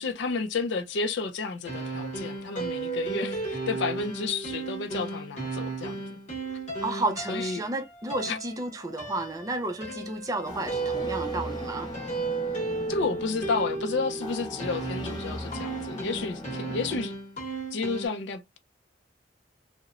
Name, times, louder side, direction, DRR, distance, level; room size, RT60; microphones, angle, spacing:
voice 1, 0.0-6.0 7.3-7.6 8.3-8.4 9.9-10.0 12.9-17.1 17.7-18.6, left 4 dB, 65° left, 0.4 m, -31 dB
sound 1, 1.6-18.1, right 3 dB, 35° left, 1.0 m, -34 dB
voice 2, 6.8-11.9, right 2 dB, 20° right, 0.3 m, -32 dB
sound 2, 10.4-17.0, left 1 dB, 20° left, 0.6 m, -39 dB
2.9 x 2.0 x 2.4 m
head